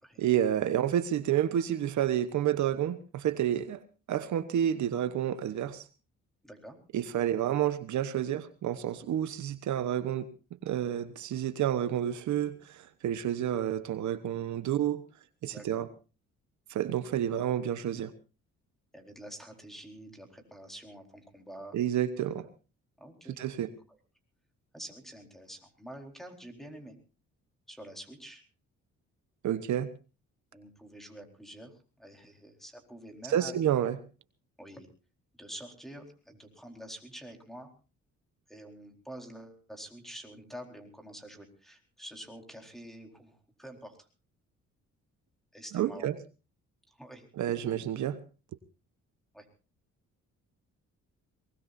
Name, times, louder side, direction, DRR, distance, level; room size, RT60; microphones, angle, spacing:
voice 1, 0.2-3.8 4.1-5.8 6.9-10.3 10.6-15.0 15.4-15.9 16.7-18.1 21.7-22.5 23.4-23.7 29.4-29.9 33.3-34.0 45.7-46.1 47.4-48.2, right 10 dB, 70° right, 11 dB, 1.1 m, -29 dB
voice 2, 6.4-6.8 15.5-15.9 18.9-21.8 23.0-23.4 24.7-26.9 27.7-28.4 30.5-33.8 34.6-34.9 35.4-37.7 38.5-44.1 45.5-46.1 46.9-47.3 49.3-49.5, right 1 dB, ahead, 3 dB, 4.3 m, -47 dB
22.5 x 20.0 x 2.7 m, 0.34 s
cardioid pair, 90°, 30 cm